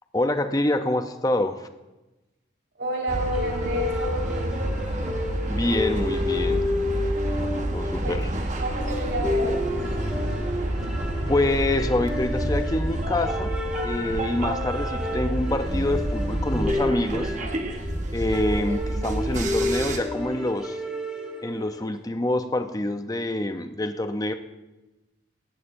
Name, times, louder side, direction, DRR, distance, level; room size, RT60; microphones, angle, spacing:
voice 1, 0.1-1.7 5.5-6.7 7.7-8.3 11.3-13.6 13.8-17.3 18.1-20.8 21.4-24.3, left 1 dB, 20° left, 8 dB, 0.6 m, -26 dB
voice 2, 2.8-4.8 8.0-8.1 8.6-9.6, equal, 70° right, -2 dB, 4.4 m, -30 dB
sound 1, 3.1-20.0, right 1 dB, 40° right, 1.2 m, -29 dB
sound 2, 3.3-21.8, left 1 dB, 5° right, 2.1 m, -31 dB
17.5 x 16.0 x 2.6 m, 1.1 s
head